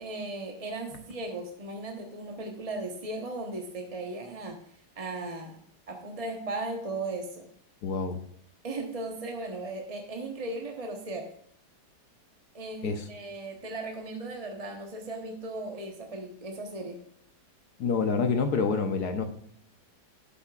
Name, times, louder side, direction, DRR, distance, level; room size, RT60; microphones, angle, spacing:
voice 1, 0.0-4.6 5.0-5.6 5.9-7.5 8.6-11.4 12.5-17.0, right 2 dB, 25° right, 2 dB, 0.9 m, -37 dB
voice 2, 7.8-8.2 12.8-13.1 17.8-19.2, left 5 dB, 70° left, 6 dB, 1.4 m, -27 dB
11.5 x 8.1 x 2.4 m, 0.65 s
omnidirectional pair, 1.9 m